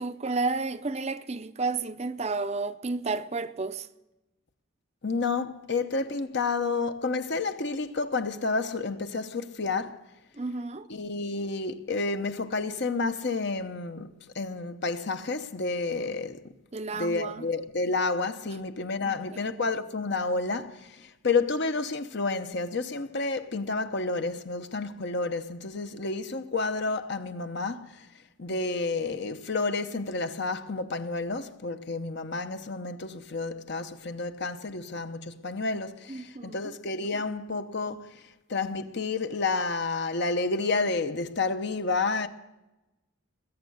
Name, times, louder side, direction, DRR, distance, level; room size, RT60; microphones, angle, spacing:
voice 1, 0.0-3.9 10.4-10.9 16.7-17.5 19.0-19.4 36.1-36.7, right 3 dB, 30° right, 0.6 m, -32 dB
voice 2, 5.0-10.0 10.9-16.4 16.9-28.1 28.4-38.1 38.5-42.3, left 3 dB, 55° left, 0.9 m, -30 dB
20.5 x 8.5 x 7.9 m
head